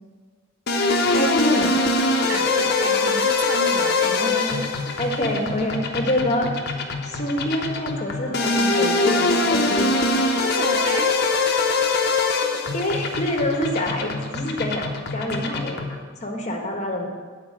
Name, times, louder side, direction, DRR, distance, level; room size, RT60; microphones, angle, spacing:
sound 1, 0.7-16.0, left 3 dB, 50° left, 0.9 m, -23 dB
voice 1, 1.0-1.8 4.2-4.6 5.0-6.5 7.0-10.0 12.2-14.9 15.1-15.9 16.2-17.1, left 1 dB, 35° left, 1 dB, 1.2 m, -26 dB
voice 2, 2.3-4.4 10.4-11.3, right 4 dB, 80° right, 9 dB, 0.6 m, -31 dB
9.7 x 4.6 x 7.5 m, 1.5 s
head